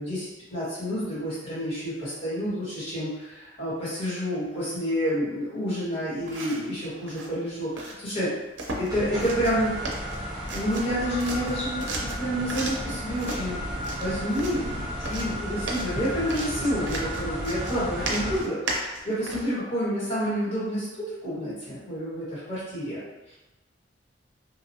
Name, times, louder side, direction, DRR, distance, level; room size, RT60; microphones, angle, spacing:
voice 1, 0.0-8.3 8.8-9.7 10.5-23.0 23.3-23.4, equal, 35° left, -10 dB, 1.4 m, -29 dB
sound 1, 6.2-6.7 7.1-7.3 7.8-8.0 8.6-8.9 9.2-9.6 9.9-10.9 11.2-12.9 13.2-13.4 13.8-14.6 15.0-19.5, right 2 dB, 75° right, 0.5 m, -35 dB
sound 2, 8.9-18.4, equal, 20° right, 0.7 m, -33 dB
2.9 x 2.4 x 2.7 m, 1.1 s
head